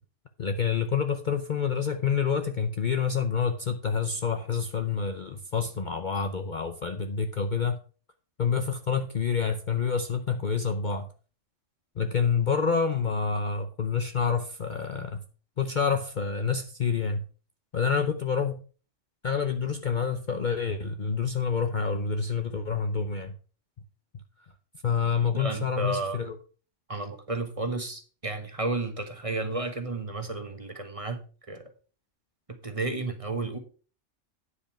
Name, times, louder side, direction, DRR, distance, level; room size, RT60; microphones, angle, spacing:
voice 1, 0.4-7.8 8.4-11.1 12.0-15.2 15.6-17.2 17.7-18.6 19.2-23.3 24.8-26.4, left 6 dB, 45° left, 0.7 m, -28 dB
voice 2, 25.3-26.2 26.9-31.2 31.5-31.6 32.6-33.6, right 2 dB, 30° right, 1.3 m, -32 dB
9.8 x 5.3 x 5.7 m
omnidirectional pair, 1.3 m